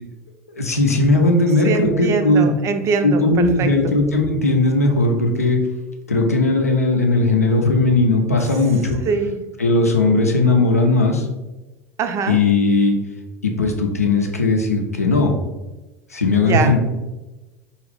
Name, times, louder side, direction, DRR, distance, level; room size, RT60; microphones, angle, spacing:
voice 1, 0.6-2.5 3.0-5.6 6.1-9.0 9.6-11.3 12.3-13.0 13.4-15.3 16.1-16.8, left 2 dB, 90° left, 2 dB, 0.5 m, -17 dB
voice 2, 1.6-3.7 9.1-9.4 12.0-12.4 16.4-16.8, right 5 dB, 40° right, 7 dB, 0.5 m, -22 dB
4.8 x 2.4 x 3.3 m, 1.1 s
figure-of-eight pair, 75°, 8 cm